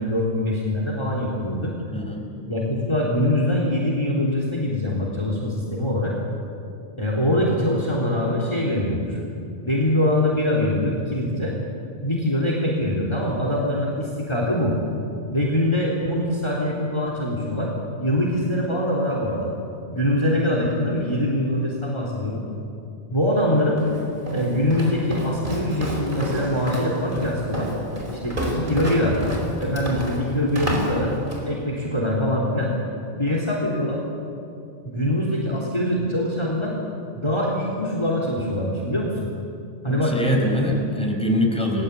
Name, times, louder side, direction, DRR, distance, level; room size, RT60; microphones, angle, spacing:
voice 1, 0.0-1.7 2.5-6.1 7.0-9.2 9.6-11.5 12.0-14.8 15.3-17.7 18.0-19.5 19.9-22.4 23.1-23.8 24.3-27.7 28.2-29.2 29.6-31.1 31.4-32.7 33.2-34.0 34.9-36.7 37.1-39.3 39.8-40.2 40.7-40.8, left 1 dB, 25° left, -2 dB, 3.6 m, -23 dB
voice 2, 1.9-2.2 39.9-41.8, equal, 5° left, 0 dB, 5.2 m, -23 dB
Walk footsteps, 23.8-31.5, right 1 dB, 55° right, 5.3 m, -29 dB
30.0 x 20.5 x 8.4 m, 2.6 s
omnidirectional pair, 1.0 m